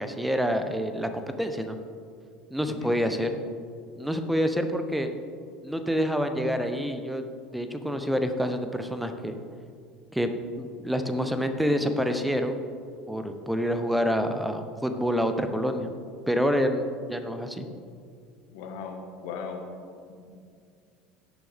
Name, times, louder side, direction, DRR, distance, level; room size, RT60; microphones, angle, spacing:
voice 1, 0.0-1.8 2.5-3.3 4.0-5.1 5.6-7.2 7.5-9.4 10.1-10.3 10.6-12.6 13.1-15.9 16.3-17.7, equal, 5° right, 7 dB, 0.9 m, -27 dB
voice 2, 18.5-19.7 20.1-20.4, left 5 dB, 60° left, 4 dB, 1.3 m, -38 dB
16.5 x 6.9 x 3.6 m, 2.2 s
figure-of-eight pair, 70°, 0 cm